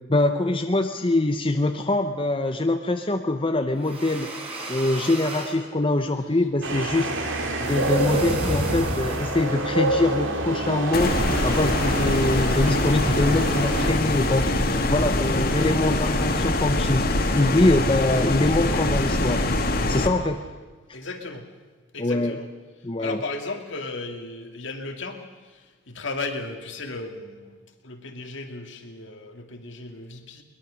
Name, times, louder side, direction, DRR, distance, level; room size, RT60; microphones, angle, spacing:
voice 1, 0.0-4.3 4.7-7.1 7.6-11.1 11.4-14.6 14.9-17.0 17.4-19.5 19.9-20.4 22.0-22.4 22.8-23.2, left 2 dB, 25° left, 6 dB, 0.7 m, -23 dB
sound 1, 3.7-5.6 7.6-9.5, right 1 dB, 30° right, 4.3 m, -32 dB
sound 2, 6.6-13.9, right 2 dB, 70° right, 2.8 m, -27 dB
sound 3, 10.9-20.1, left 1 dB, 45° left, 1.9 m, -23 dB
voice 2, 20.9-21.5 21.9-22.5 23.0-25.2 25.5-27.5 27.8-30.4, left 3 dB, 65° left, 5 dB, 2.2 m, -35 dB
22.0 x 21.0 x 6.4 m, 1.3 s
head